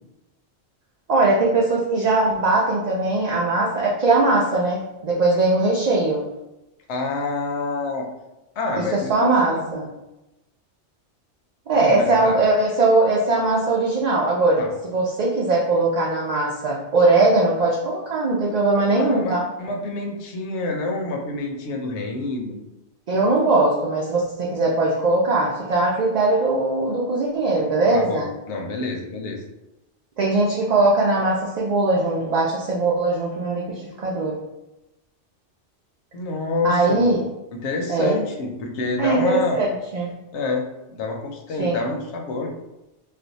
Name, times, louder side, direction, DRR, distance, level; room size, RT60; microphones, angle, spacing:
voice 1, 1.1-6.3 8.8-9.9 11.7-19.4 23.1-28.3 30.2-34.4 36.6-37.2 37.9-38.2 39.0-40.2 41.6-41.8, right 2 dB, 55° right, -4 dB, 0.4 m, -20 dB
voice 2, 6.9-8.1 8.6-9.7 11.7-12.4 14.6-14.7 18.9-22.5 27.9-29.4 36.1-37.1 37.5-39.7 40.3-42.5, left 3 dB, 75° left, 2 dB, 0.9 m, -27 dB
2.5 x 2.2 x 3.9 m, 0.96 s
omnidirectional pair, 1.2 m